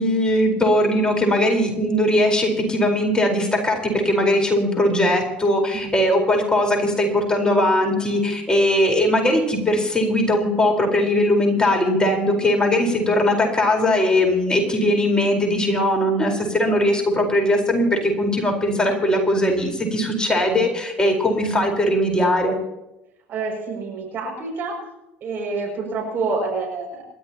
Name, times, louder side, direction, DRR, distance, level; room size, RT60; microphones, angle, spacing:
voice 1, 0.0-22.5, left 1 dB, 15° left, 2 dB, 4.5 m, -20 dB
voice 2, 23.3-24.8 25.2-27.0, right 4 dB, 45° right, 0 dB, 6.6 m, -27 dB
28.0 x 13.0 x 3.0 m, 0.95 s
hypercardioid pair, 70°, 5 cm